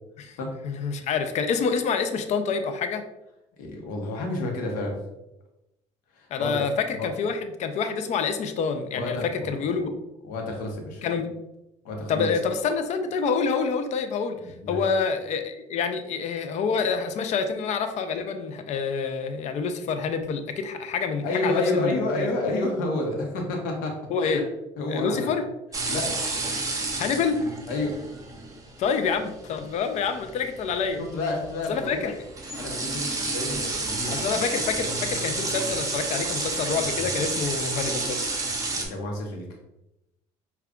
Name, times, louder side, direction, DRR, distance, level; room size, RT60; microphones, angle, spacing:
voice 1, 0.6-3.0 6.3-9.9 11.0-11.3 12.1-14.4 14.7-22.3 24.1-24.4 24.9-25.4 27.0-27.4 28.8-31.0 31.7-32.1 34.1-38.2, left 5 dB, 55° left, 8 dB, 0.4 m, -27 dB
voice 2, 3.6-5.0 6.1-6.6 7.0-7.1 8.9-9.9 10.2-11.0 11.8-12.3 14.4-14.8 21.2-24.4 24.8-25.4 25.9-26.2 27.7-28.0 31.0-32.0 32.6-34.4 38.7-39.5, left 2 dB, 80° left, 1 dB, 0.8 m, -30 dB
sound 1, 25.7-38.9, right 2 dB, 25° right, 0.8 m, -30 dB
4.9 x 2.3 x 2.3 m, 0.91 s
supercardioid pair, 85°, 14 cm